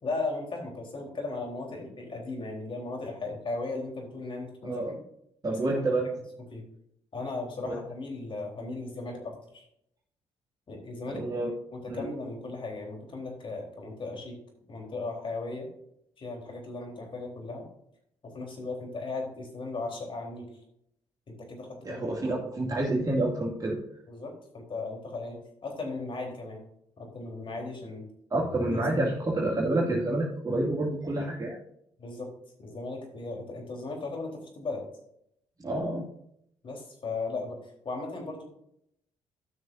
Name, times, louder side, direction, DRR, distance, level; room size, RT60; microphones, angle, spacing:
voice 1, 0.0-5.0 5.7-6.1 6.5-6.6 7.1-9.6 10.7-11.2 11.7-14.4 14.7-15.7 16.2-17.7 18.2-20.5 21.3-22.0 24.1-26.6 27.0-28.1 28.7-28.8 32.0-32.3 32.6-34.8 36.6-37.6 37.8-38.4, left 3 dB, 45° left, 1 dB, 3.8 m, -37 dB
voice 2, 4.6-4.9 5.4-6.1 7.7-7.8 11.1-11.5 11.9-12.0 21.8-23.8 28.3-31.6 35.6-36.1, right 2 dB, 30° right, -3 dB, 2.3 m, -28 dB
13.0 x 6.2 x 2.6 m, 0.73 s
supercardioid pair, 65°, 12 cm